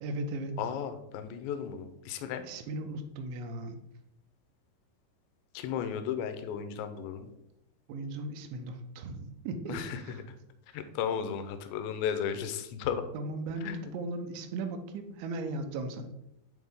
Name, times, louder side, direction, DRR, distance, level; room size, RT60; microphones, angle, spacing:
voice 1, 0.0-0.6 2.4-3.8 7.9-10.2 13.1-16.1, right 2 dB, 85° right, 6 dB, 2.9 m, -37 dB
voice 2, 0.6-2.4 5.5-7.3 9.7-10.2 10.7-13.1 13.6-13.9, left 8 dB, 85° left, 9 dB, 2.7 m, -34 dB
8.7 x 3.6 x 3.5 m, 0.86 s
omnidirectional pair, 5.3 m